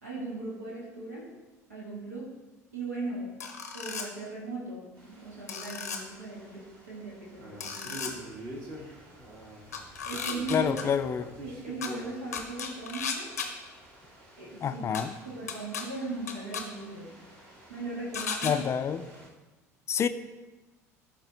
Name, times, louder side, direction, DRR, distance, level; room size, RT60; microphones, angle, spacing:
voice 1, 0.0-1.3 1.7-2.3 2.7-3.4 3.7-8.0 9.6-9.7 10.0-10.7 11.4-13.4 14.4-14.8 15.2-17.2 17.7-18.6, right 2 dB, 85° right, -6 dB, 1.3 m, -38 dB
sound 1, 3.4-4.0 5.5-6.0 7.6-8.1 9.7-10.8 11.8-11.9 12.3-13.5 14.9-15.0 15.5-15.8 16.3-16.6 18.1-18.5, left 6 dB, 85° left, 0.7 m, -35 dB
sound 2, 5.0-19.3, right 1 dB, 50° right, 1.9 m, -47 dB
voice 2, 10.5-11.3 14.6-15.1 18.4-19.0 19.9-20.1, left 7 dB, 35° left, 11 dB, 0.3 m, -28 dB
12.0 x 4.2 x 2.6 m, 1.1 s
figure-of-eight pair, 65°, 8 cm